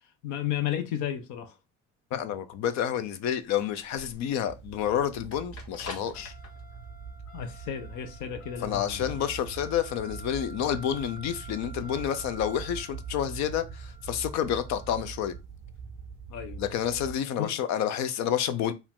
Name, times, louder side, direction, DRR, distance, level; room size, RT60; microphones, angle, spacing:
voice 1, 0.2-1.5 7.3-9.2 16.3-16.6 17.4-17.5, left 10 dB, 90° left, 0.9 m, -33 dB
voice 2, 2.1-6.3 8.6-15.3 16.6-18.7, left 9 dB, 65° left, 0.6 m, -29 dB
sound 1, 2.9-17.0, left 1 dB, 50° left, 1.3 m, -49 dB
sound 2, 4.5-17.1, right 6 dB, 40° right, 0.5 m, -43 dB
4.8 x 2.7 x 3.6 m
cardioid pair, 160°, 29 cm